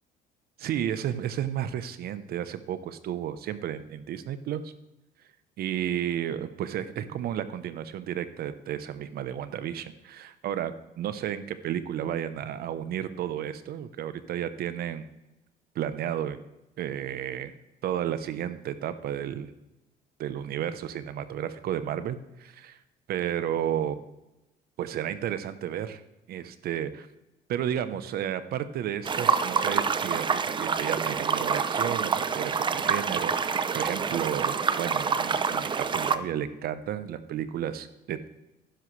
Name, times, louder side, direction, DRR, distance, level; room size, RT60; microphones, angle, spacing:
voice 1, 0.6-4.7 5.6-15.1 15.7-16.4 16.8-17.5 17.8-19.5 20.2-22.8 23.1-24.0 24.8-26.0 26.3-27.1 27.5-38.3, right 10 dB, 65° right, 12 dB, 0.9 m, -32 dB
sound 1, 29.0-36.2, right 5 dB, 30° right, 0.6 m, -27 dB
11.5 x 10.5 x 3.3 m, 0.97 s
cardioid pair, 110°, 17 cm